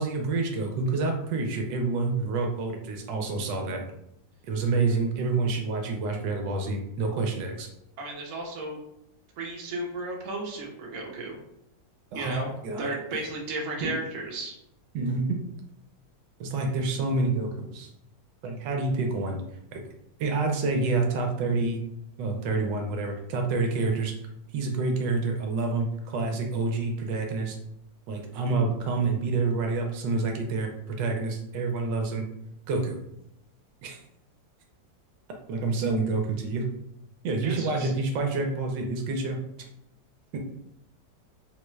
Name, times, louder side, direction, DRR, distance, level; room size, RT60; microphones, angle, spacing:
voice 1, 0.0-3.9 4.4-7.7 12.1-12.4 12.6-13.2 13.8-13.9 14.9-15.4 16.4-17.9 18.4-19.4 19.7-19.8 20.2-21.8 22.2-24.1 24.5-27.6 28.1-32.3 32.7-33.0 33.8-34.0 35.5-36.7 37.2-39.4 40.3-40.4, right 3 dB, 80° right, 3 dB, 1.3 m, -28 dB
voice 2, 8.0-8.8 9.4-11.3 12.1-12.5 12.8-14.6 37.4-37.9, right 2 dB, 55° right, -1 dB, 1.0 m, -34 dB
3.9 x 2.2 x 3.1 m, 0.78 s
omnidirectional pair, 2.0 m